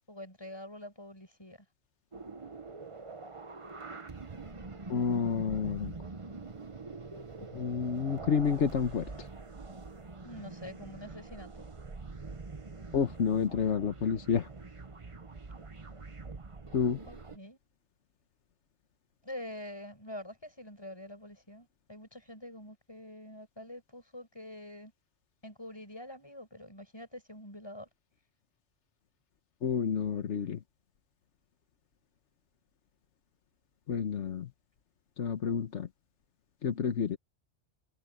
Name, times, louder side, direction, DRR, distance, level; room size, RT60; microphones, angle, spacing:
voice 1, 0.1-1.6 10.2-11.7 17.1-17.6 19.2-24.9 25.4-27.9, left 1 dB, 20° left, 7.3 m, -46 dB
sound 1, 2.1-17.4, right 3 dB, 30° right, 1.0 m, -45 dB
voice 2, 4.9-5.9 7.5-9.1 12.9-14.5 16.7-17.0 29.6-30.6 33.9-34.5 35.2-35.9 36.6-37.2, left 6 dB, 85° left, 1.4 m, -29 dB
omnidirectional pair, 1.2 m